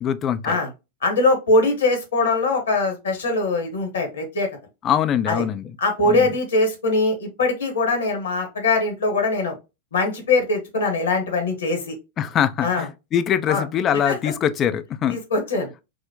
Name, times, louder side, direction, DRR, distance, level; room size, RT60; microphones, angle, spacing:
voice 1, 0.0-0.6 4.8-5.6 6.0-6.3 12.2-15.2, left 9 dB, 30° left, 0.4 m, -23 dB
voice 2, 1.0-4.5 5.3-5.4 5.8-9.5 9.9-12.0 12.6-12.9 13.5-13.6 14.1-14.2 15.1-15.7, left 2 dB, 65° left, 1.2 m, -22 dB
4.1 x 2.1 x 2.9 m
figure-of-eight pair, 90°, 0 cm